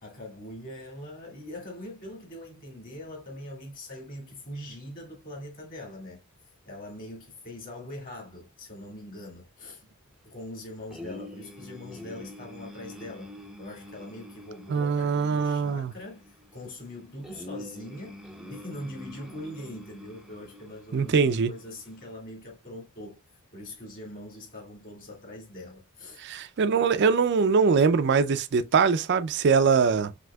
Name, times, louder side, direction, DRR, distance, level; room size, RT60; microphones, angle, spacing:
voice 1, 0.0-6.2 6.6-9.8 10.2-13.3 13.6-23.2 23.5-26.2, left 1 dB, 40° left, 2.2 m, -42 dB
sound 1, 10.9-22.1, left 1 dB, 5° right, 0.6 m, -46 dB
voice 2, 14.7-15.9 20.9-21.5 26.2-30.1, right 5 dB, 50° right, 0.4 m, -22 dB
6.0 x 2.8 x 2.2 m
head